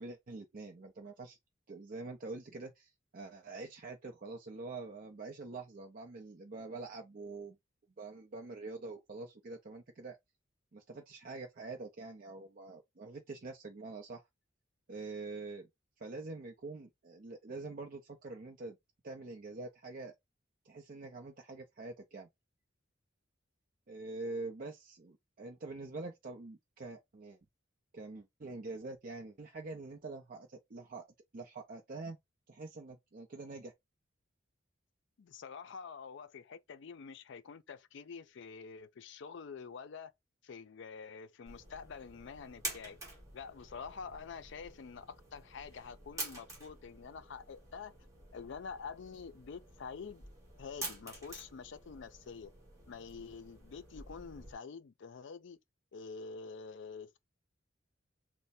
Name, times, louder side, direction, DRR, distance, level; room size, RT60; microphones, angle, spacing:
voice 1, 0.0-1.4 1.7-7.6 8.0-10.2 10.7-14.2 14.9-15.7 16.0-18.8 19.0-20.2 20.6-22.3 23.9-27.4 27.9-31.1 31.3-32.2 32.5-33.7, right 3 dB, 45° right, 0.5 m, -45 dB
voice 2, 35.2-40.1 40.4-43.0 43.3-47.9 48.3-50.2 50.6-52.5 52.9-55.6 55.9-57.2, left 5 dB, 65° left, 0.4 m, -47 dB
sound 1, 41.5-54.5, right 2 dB, 15° right, 1.3 m, -48 dB
3.2 x 2.1 x 4.1 m
head